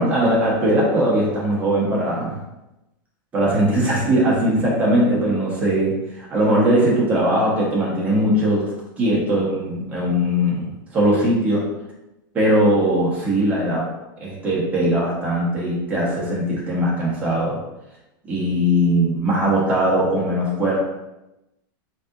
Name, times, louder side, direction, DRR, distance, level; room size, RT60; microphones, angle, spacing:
voice 1, 0.0-2.4 3.3-8.6 9.0-10.7 10.9-11.6 12.3-13.8 14.2-17.6 18.3-20.8, right 1 dB, 15° right, -5 dB, 1.1 m, -20 dB
6.4 x 2.9 x 2.6 m, 0.94 s
supercardioid pair, 170°, 12 cm